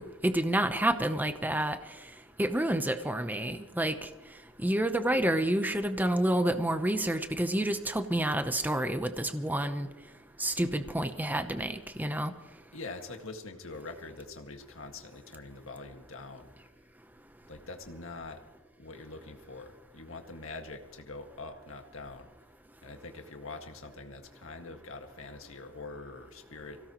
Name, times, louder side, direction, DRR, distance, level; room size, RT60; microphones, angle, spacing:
voice 1, 0.0-1.8 2.4-4.1 4.6-9.9 10.4-12.3, right 1 dB, 10° right, 8 dB, 0.8 m, -29 dB
voice 2, 12.7-16.5 17.5-18.4 18.8-22.3 22.8-26.8, left 3 dB, 85° left, 4 dB, 1.9 m, -44 dB
24.5 x 17.0 x 3.1 m, 1.1 s
head